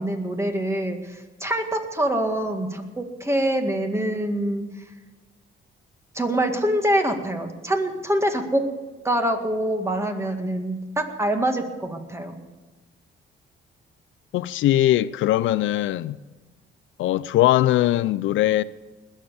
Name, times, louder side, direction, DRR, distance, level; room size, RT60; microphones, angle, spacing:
voice 1, 0.0-4.6 6.1-8.6 9.0-12.3, right 1 dB, 15° right, 2.0 m, -25 dB
voice 2, 14.3-16.2 17.0-18.6, left 14 dB, 75° left, 0.4 m, -20 dB
20.0 x 7.4 x 6.8 m
cardioid pair, 90°, 20 cm